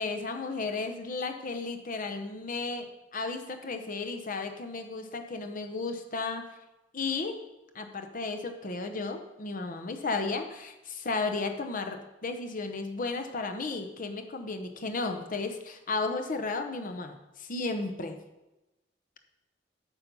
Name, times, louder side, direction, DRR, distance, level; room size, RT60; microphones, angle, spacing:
voice 1, 0.0-6.5 6.9-7.4 7.7-18.2, left 3 dB, 45° left, 6 dB, 0.8 m, -34 dB
9.1 x 5.5 x 5.4 m, 1.0 s
head